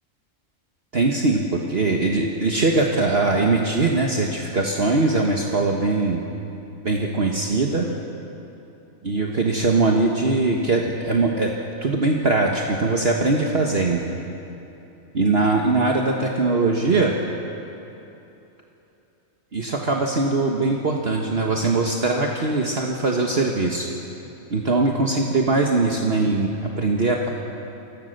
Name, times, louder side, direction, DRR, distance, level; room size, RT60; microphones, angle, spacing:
voice 1, 0.9-6.2 6.8-7.9 9.0-11.5 11.8-14.1 15.1-17.1 19.5-23.9 24.5-27.3, right 3 dB, 45° right, 0 dB, 1.7 m, -21 dB
28.5 x 21.5 x 6.7 m, 3.0 s
omnidirectional pair, 1.4 m